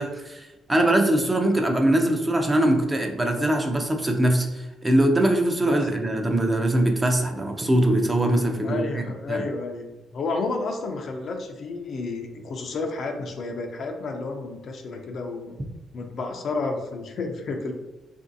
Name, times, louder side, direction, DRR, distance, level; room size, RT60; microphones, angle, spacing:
voice 1, 0.0-9.0 9.3-9.4, right 1 dB, 20° right, 3 dB, 0.5 m, -22 dB
voice 2, 8.6-15.5 15.9-17.7, left 3 dB, 60° left, 3 dB, 0.5 m, -31 dB
3.0 x 2.6 x 2.6 m, 1.1 s
cardioid pair, 90°, 0 cm